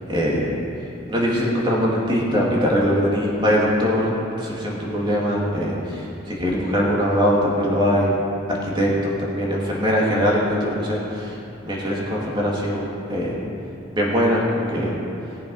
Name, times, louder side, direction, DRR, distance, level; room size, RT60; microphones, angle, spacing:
voice 1, 0.1-0.5 1.1-4.1 4.4-8.2 8.6-11.4 11.6-13.4 13.9-14.9, equal, 25° right, -4 dB, 2.4 m, -21 dB
18.0 x 7.5 x 5.6 m, 2.9 s
head